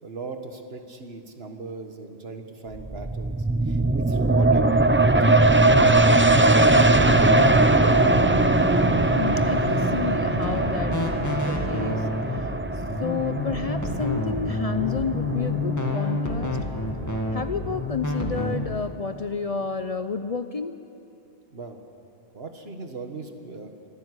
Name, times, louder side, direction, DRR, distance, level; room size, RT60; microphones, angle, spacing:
voice 1, 0.0-7.2 21.5-21.8 22.3-23.9, right 3 dB, 70° right, 5 dB, 1.8 m, -39 dB
sound 1, 2.7-16.0 16.4-16.5, right 2 dB, 15° right, 0.6 m, -20 dB
sound 2, 5.5-18.7, left 2 dB, 15° left, 2.0 m, -29 dB
voice 2, 9.2-12.5 13.0-16.6 17.3-20.7, left 5 dB, 40° left, 10 dB, 0.6 m, -31 dB
24.5 x 12.5 x 9.9 m, 2.7 s
omnidirectional pair, 1.1 m